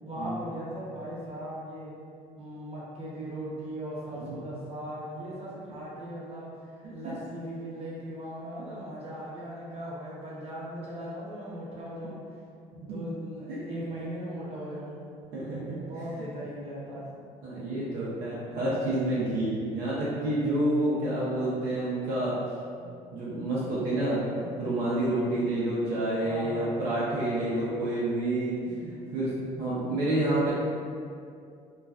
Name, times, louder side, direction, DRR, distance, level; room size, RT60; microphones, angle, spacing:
voice 1, 0.0-1.9 2.4-12.2 12.8-15.0 15.8-17.1 26.2-26.8 27.3-27.6, equal, 35° right, -7 dB, 0.9 m, -38 dB
voice 2, 15.3-15.8 17.4-22.4 22.8-22.9 23.1-30.5, right 1 dB, 65° right, -8 dB, 0.6 m, -29 dB
2.3 x 2.2 x 2.4 m, 2.4 s
supercardioid pair, 75°, 17 cm